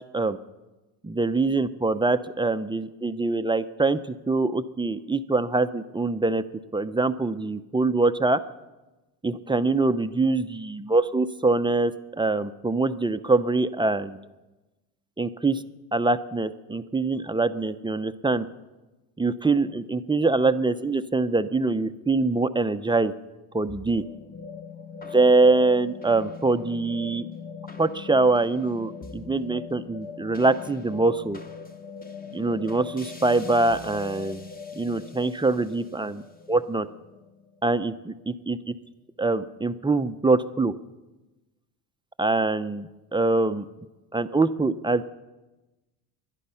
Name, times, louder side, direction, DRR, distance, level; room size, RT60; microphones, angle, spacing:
voice 1, 1.0-6.4 6.7-8.4 9.2-14.2 15.2-15.6 15.9-18.5 19.2-23.1 23.5-24.0 25.1-27.3 27.8-31.4 32.3-34.5 34.7-36.2 36.5-36.9 37.6-38.6 39.2-40.7 42.2-43.7 44.1-45.1, right 3 dB, 10° right, 10 dB, 0.6 m, -24 dB
sound 1, 23.7-38.1, left 5 dB, 20° left, 1.4 m, -41 dB
22.0 x 11.0 x 5.7 m, 1.1 s
cardioid pair, 100°, 42 cm